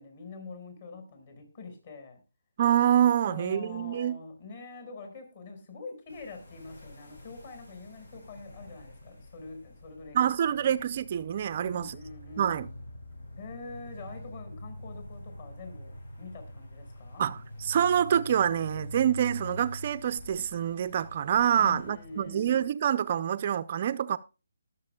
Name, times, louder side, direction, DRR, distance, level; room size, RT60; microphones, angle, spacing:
voice 1, 0.0-2.2 3.2-10.2 10.5-10.7 11.6-12.7 13.4-17.3 21.5-22.6, left 4 dB, 40° left, 5.2 m, -45 dB
voice 2, 2.6-4.2 10.1-12.0 12.4-12.7 17.2-24.2, right 9 dB, 35° right, 0.5 m, -26 dB
sound 1, 6.1-22.7, left 1 dB, 80° left, 6.8 m, -45 dB
20.5 x 7.4 x 2.3 m
hypercardioid pair, 160°, 0 cm